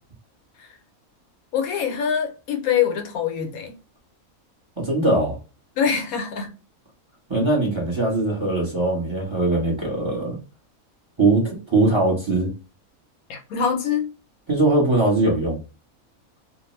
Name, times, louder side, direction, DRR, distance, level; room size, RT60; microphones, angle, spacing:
voice 1, 1.5-3.7 5.8-6.5 13.3-14.1, left 7 dB, 85° left, 1.2 m, -24 dB
voice 2, 4.8-5.3 7.3-10.4 11.2-12.5 14.5-15.6, right 2 dB, 20° right, 1.0 m, -21 dB
2.5 x 2.2 x 3.0 m
omnidirectional pair, 1.5 m